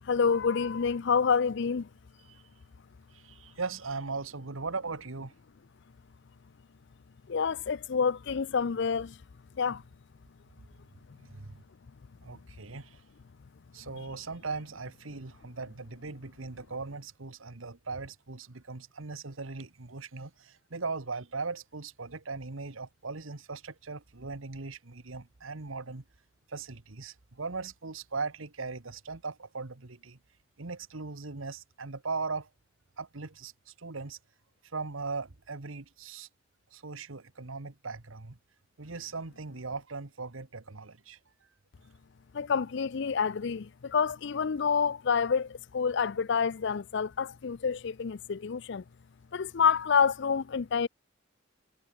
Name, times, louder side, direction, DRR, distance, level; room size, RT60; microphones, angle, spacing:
voice 1, 0.0-1.9 7.3-9.2 9.6-9.8 42.3-48.8 49.3-50.9, left 6 dB, 60° left, 0.5 m, -28 dB
voice 2, 3.1-5.3 11.3-11.6 12.2-13.0 13.7-26.0 26.5-30.2 30.6-32.5 33.0-34.2 34.7-36.3 36.7-38.4 38.8-41.2, right 4 dB, 90° right, 1.4 m, -39 dB
head